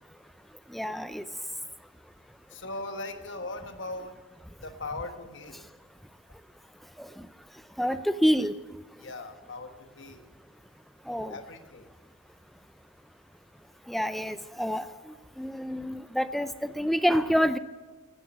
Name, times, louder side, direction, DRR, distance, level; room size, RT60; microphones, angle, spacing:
voice 1, 0.7-1.2 7.0-7.1 7.8-8.5 11.1-11.4 13.9-14.9 15.4-17.6, equal, ahead, 12 dB, 0.4 m, -27 dB
voice 2, 2.5-4.2 4.6-5.7 9.0-10.3 11.3-11.9, left 2 dB, 65° left, 7 dB, 1.4 m, -39 dB
15.5 x 9.5 x 8.6 m, 1.3 s
head